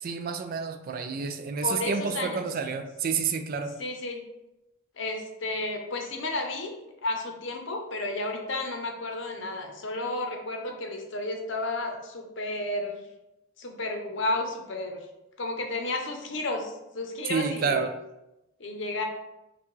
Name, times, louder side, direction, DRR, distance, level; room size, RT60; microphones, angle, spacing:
voice 1, 0.0-3.8 17.3-17.9, right 5 dB, 45° right, 6 dB, 0.3 m, -29 dB
voice 2, 1.6-2.4 3.8-4.2 5.0-6.7 7.0-13.0 13.6-15.0 15.4-17.9 18.6-19.1, left 2 dB, 60° left, 3 dB, 0.7 m, -32 dB
5.8 x 2.3 x 3.1 m, 0.93 s
head